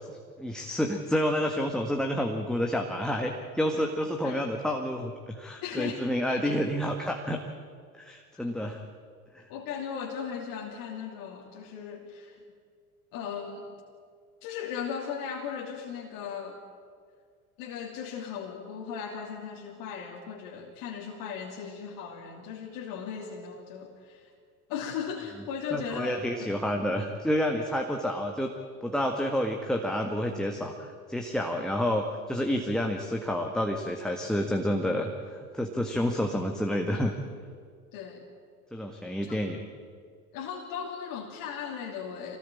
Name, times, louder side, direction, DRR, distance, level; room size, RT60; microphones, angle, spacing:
voice 1, 0.1-7.4 7.9-8.8 9.3-9.4 25.7-28.5 28.8-37.1 38.7-39.6, equal, ahead, 2 dB, 1.8 m, -29 dB
voice 2, 5.6-6.5 8.3-8.5 9.5-12.4 13.1-13.7 14.4-16.6 17.6-24.3 24.7-26.5 37.9-38.2 39.2-39.4 40.3-42.4, left 7 dB, 50° left, 0 dB, 3.0 m, -37 dB
25.5 x 18.5 x 8.7 m, 2.1 s
figure-of-eight pair, 75°, 42 cm